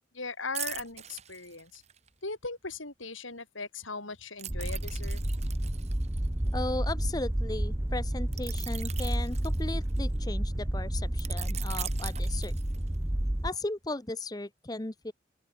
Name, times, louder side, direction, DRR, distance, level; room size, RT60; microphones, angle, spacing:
voice 1, 0.1-1.8 2.2-5.2, left 3 dB, 80° left, 7.1 m, -39 dB
sound 1, 0.5-2.1 4.4-7.1 8.3-10.2 11.2-13.0 13.5-13.7, right 11 dB, 35° right, 2.1 m, -41 dB
sound 2, 4.5-13.5, right 1 dB, 10° right, 0.6 m, -31 dB
voice 2, 6.5-12.5 13.4-15.1, left 2 dB, 20° left, 0.8 m, -36 dB
open air
head